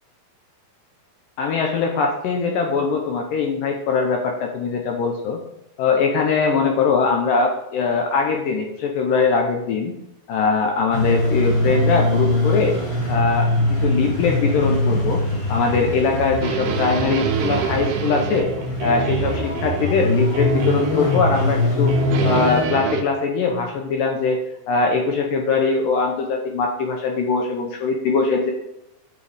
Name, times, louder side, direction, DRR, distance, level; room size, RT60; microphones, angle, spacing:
voice 1, 1.4-5.4 5.8-9.9 10.3-12.8 13.1-15.2 15.5-18.5 18.8-21.9 22.2-24.4 24.7-28.5, left 4 dB, 75° left, 2 dB, 2.2 m, -21 dB
sound 1, 10.9-22.6, left 2 dB, 45° left, 2.9 m, -22 dB
sound 2, 16.4-20.1 20.3-21.6 21.9-23.0, right 9 dB, 90° right, 2.7 m, -27 dB
9.4 x 5.1 x 3.4 m, 0.83 s
omnidirectional pair, 4.5 m